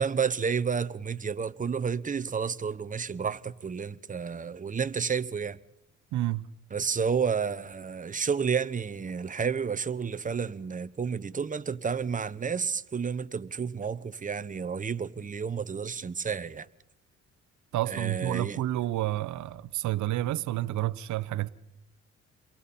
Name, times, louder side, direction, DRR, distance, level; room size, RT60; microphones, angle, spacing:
voice 1, 0.0-5.6 6.7-16.7 17.9-18.6, right 6 dB, 25° right, 0.9 m, -31 dB
voice 2, 6.1-6.4 17.7-21.5, right 14 dB, 70° right, 0.7 m, -29 dB
29.0 x 22.5 x 4.2 m
cardioid pair, 90°, 30 cm